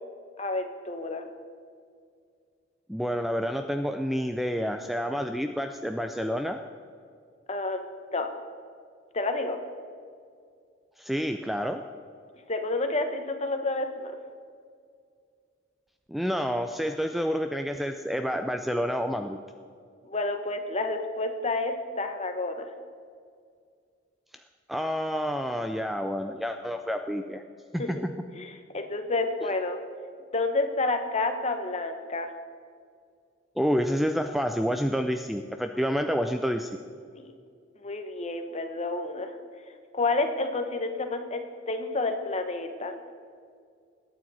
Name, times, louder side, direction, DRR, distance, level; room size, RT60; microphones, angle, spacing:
voice 1, 0.4-1.3 7.5-8.3 9.1-9.6 12.5-14.1 20.0-22.7 27.8-27.9 28.4-29.8 30.3-32.3 37.1-37.3 37.8-39.3 39.9-43.0, left 2 dB, 35° left, 6 dB, 1.1 m, -30 dB
voice 2, 2.9-6.6 11.0-11.8 16.1-19.4 24.7-27.4 27.7-28.1 33.6-36.7, equal, ahead, 6 dB, 0.4 m, -29 dB
21.0 x 9.2 x 4.2 m, 2.2 s
head